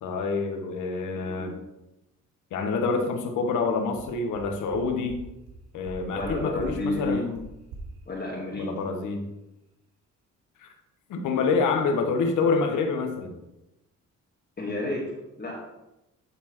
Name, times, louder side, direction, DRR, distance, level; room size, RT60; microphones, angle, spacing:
voice 1, 0.0-1.5 2.5-5.2 5.7-7.4 8.6-9.3 10.6-10.7 11.1-13.3, left 4 dB, 80° left, 5 dB, 1.1 m, -27 dB
voice 2, 1.1-1.6 6.1-7.2 8.1-8.7 14.6-15.0 15.4-15.6, left 2 dB, 30° left, -3 dB, 1.5 m, -31 dB
sound 1, 4.0-4.1 4.3-4.4 4.7-4.8 5.1-5.2 5.5-5.6 5.8-6.3 6.6-6.7 6.9-7.0 7.3-7.4 7.7-7.8, right 6 dB, 85° right, 1.7 m, -42 dB
11.0 x 4.3 x 3.0 m, 0.92 s
cardioid pair, 90°, 30 cm